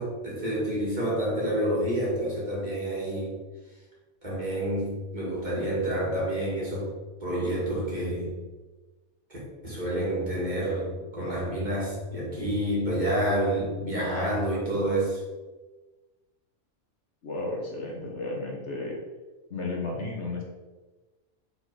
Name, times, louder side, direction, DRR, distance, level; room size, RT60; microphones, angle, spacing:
voice 1, 0.0-3.3 4.2-6.9 7.2-8.4 9.3-9.4 9.6-15.2, right 1 dB, 30° right, -6 dB, 2.0 m, -28 dB
voice 2, 17.2-19.0 19.5-20.4, left 2 dB, 55° left, -1 dB, 1.3 m, -33 dB
5.5 x 3.9 x 4.7 m, 1.2 s
omnidirectional pair, 1.5 m